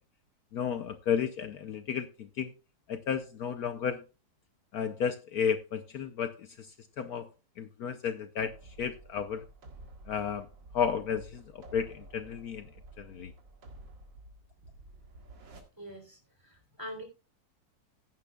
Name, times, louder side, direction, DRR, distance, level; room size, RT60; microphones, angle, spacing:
voice 1, 0.5-2.5 2.9-4.0 4.7-7.3 7.6-9.5 10.1-10.5 10.7-12.7 13.0-13.3, left 7 dB, 65° left, 10 dB, 1.1 m, -33 dB
sound 1, 8.4-15.6, right 2 dB, 80° right, 2.5 m, -51 dB
voice 2, 15.8-16.2 16.4-17.0, equal, 10° right, 4 dB, 3.1 m, -43 dB
15.0 x 10.5 x 2.3 m, 0.30 s
omnidirectional pair, 2.0 m